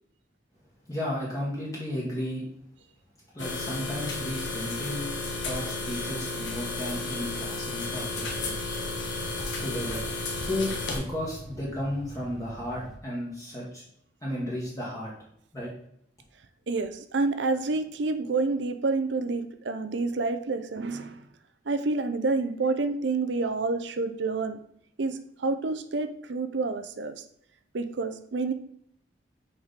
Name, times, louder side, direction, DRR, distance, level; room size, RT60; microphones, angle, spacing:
voice 1, 0.9-2.4 3.3-5.1 5.4-8.5 9.6-10.0 10.4-13.8 14.2-15.1 15.5-15.7, left 1 dB, 20° left, -6 dB, 1.5 m, -33 dB
sound 1, 3.4-11.0, left 3 dB, 80° left, 1.3 m, -33 dB
sound 2, 7.6-13.0, equal, ahead, 1.3 m, -45 dB
voice 2, 16.7-21.3 21.7-24.6 25.0-27.2 27.7-28.5, right 3 dB, 75° right, 9 dB, 0.6 m, -28 dB
6.1 x 4.8 x 4.1 m, 0.70 s
head